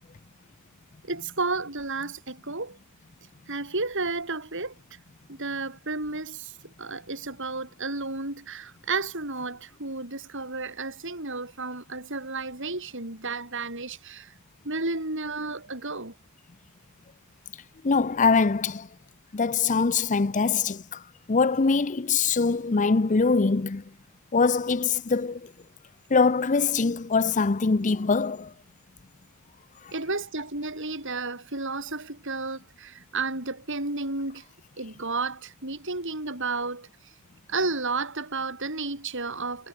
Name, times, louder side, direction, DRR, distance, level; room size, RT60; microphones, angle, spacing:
voice 1, 1.0-2.8 3.5-4.7 5.3-14.3 14.6-16.1 29.9-34.4 34.8-36.9 37.5-39.7, right 3 dB, 55° right, 6.6 m, -32 dB
voice 2, 17.8-18.9 19.3-21.0 21.3-23.8 24.3-25.5 26.1-28.5, left 4 dB, 35° left, 0.6 m, -23 dB
head